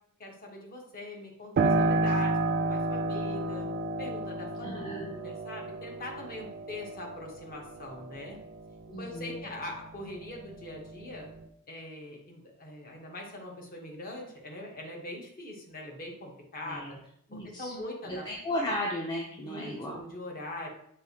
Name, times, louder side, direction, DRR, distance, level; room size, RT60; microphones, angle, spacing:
voice 1, 0.2-3.7 4.0-8.4 9.0-11.3 11.7-17.0 17.3-18.3 19.4-20.7, left 1 dB, 40° left, 0 dB, 0.9 m, -42 dB
Piano, 1.6-10.0 10.4-11.4, right 2 dB, 45° right, 0.3 m, -31 dB
voice 2, 4.6-5.1 8.9-9.5 16.7-16.9 17.3-17.7 18.1-20.0, left 1 dB, 20° left, -2 dB, 0.4 m, -35 dB
6.1 x 2.4 x 2.8 m, 0.71 s
head